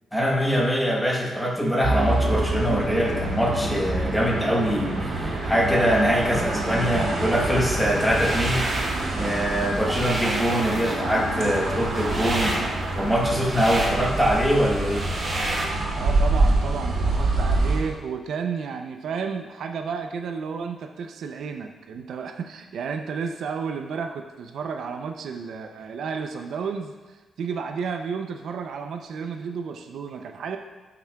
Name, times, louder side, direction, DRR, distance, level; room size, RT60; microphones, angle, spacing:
voice 1, 0.1-8.7 9.2-15.1, equal, 5° left, -2 dB, 1.1 m, -23 dB
sound 1, 1.8-17.8, right 2 dB, 85° right, 2.0 m, -26 dB
sound 2, 7.9-9.0 9.4-15.7, right 1 dB, 25° right, 1.2 m, -31 dB
voice 2, 16.0-30.6, right 6 dB, 65° right, 5 dB, 0.4 m, -32 dB
12.0 x 5.8 x 2.3 m, 1.3 s
wide cardioid pair, 180°, 0 cm